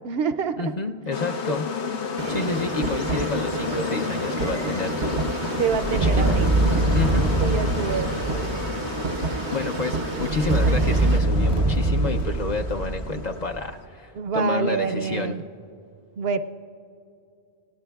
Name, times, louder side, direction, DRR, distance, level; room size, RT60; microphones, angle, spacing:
voice 1, 0.0-0.7 5.6-6.9 7.4-8.2 14.1-15.4 16.2-16.4, right 6 dB, 70° right, 10 dB, 0.8 m, -27 dB
voice 2, 0.6-1.7 2.3-5.6 5.9-6.2 6.9-7.3 9.5-15.4, left 3 dB, 50° left, 4 dB, 0.6 m, -29 dB
sound 1, 1.1-13.7, left 6 dB, 85° left, 1.1 m, -32 dB
sound 2, 2.2-11.2, right 4 dB, 90° right, 1.0 m, -31 dB
sound 3, 5.7-9.0 10.2-13.5, right 2 dB, 40° right, 0.6 m, -23 dB
28.5 x 18.0 x 2.3 m, 2.5 s
omnidirectional pair, 1.1 m